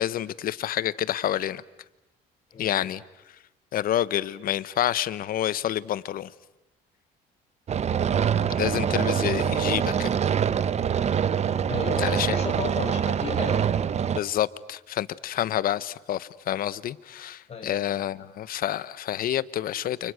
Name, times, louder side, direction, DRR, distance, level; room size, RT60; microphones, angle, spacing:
voice 1, 0.0-1.6 2.6-3.4 3.7-6.3 8.5-10.1 12.0-12.4 14.1-20.1, left 11 dB, 60° left, 1.0 m, -28 dB
voice 2, 2.5-2.9 7.9-8.2 11.7-13.6 17.5-17.7, left 5 dB, 40° left, 7.4 m, -34 dB
sound 1, 7.7-14.2, right 8 dB, 40° right, 1.0 m, -25 dB
30.0 x 29.5 x 6.5 m
cardioid pair, 110°, 17 cm